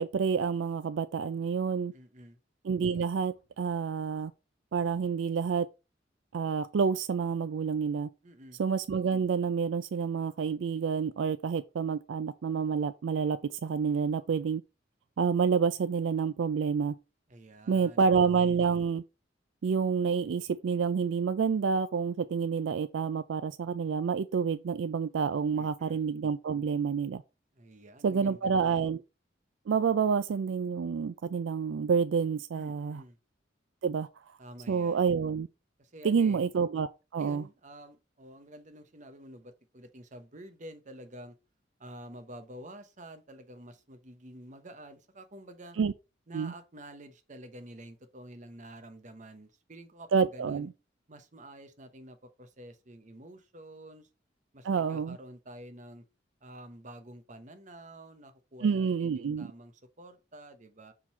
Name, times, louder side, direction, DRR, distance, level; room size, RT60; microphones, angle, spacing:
voice 1, 0.0-1.9 2.6-4.3 4.7-5.7 6.3-8.1 8.6-14.6 15.2-17.0 17.7-19.0 19.6-27.2 28.0-29.0 29.7-33.0 33.8-34.4 34.7-35.5 36.0-37.4 45.8-45.9 46.3-46.5 50.1-50.7 54.6-55.2 58.6-59.5, right 6 dB, 80° right, 0.4 m, -28 dB
voice 2, 1.9-2.4 8.2-8.6 17.3-18.5 25.6-26.0 27.5-28.8 32.5-33.2 34.4-35.1 35.8-36.4 37.2-41.4 41.8-45.8 46.3-50.7 51.1-54.1 54.5-56.0 56.4-60.9, right 1 dB, 40° right, 1.0 m, -49 dB
7.3 x 3.9 x 4.3 m
head